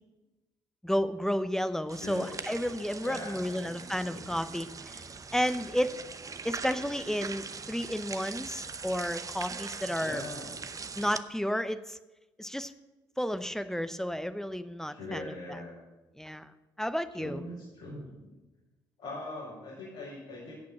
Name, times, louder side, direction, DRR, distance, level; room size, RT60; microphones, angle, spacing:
voice 1, 0.8-5.0 5.3-5.9 6.4-10.2 11.0-12.0 12.4-12.7 13.2-15.6 16.2-16.5 16.8-17.4, equal, 5° left, 12 dB, 0.8 m, -32 dB
sound 1, 1.9-11.2, right 5 dB, 30° right, 0.8 m, -41 dB
voice 2, 2.0-2.5 3.0-3.7 4.1-4.2 10.0-10.5 14.9-15.8 17.2-18.3 19.0-20.5, left 2 dB, 70° left, -8 dB, 5.4 m, -41 dB
16.0 x 6.1 x 7.5 m, 1.1 s
hypercardioid pair, 50°, 11 cm